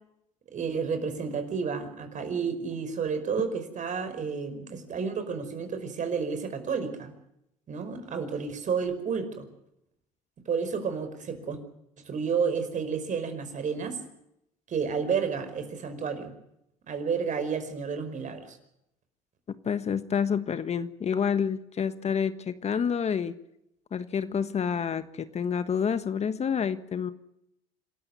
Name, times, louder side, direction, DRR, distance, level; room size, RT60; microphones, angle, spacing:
voice 1, 0.5-7.1 7.7-9.5 10.4-11.6 12.0-14.0 14.7-16.3 16.9-18.6, right 6 dB, 45° right, 9 dB, 5.1 m, -31 dB
voice 2, 19.6-23.4 23.9-27.1, left 7 dB, 40° left, 12 dB, 1.4 m, -28 dB
27.0 x 13.5 x 9.6 m, 0.81 s
hypercardioid pair, 70°, 18 cm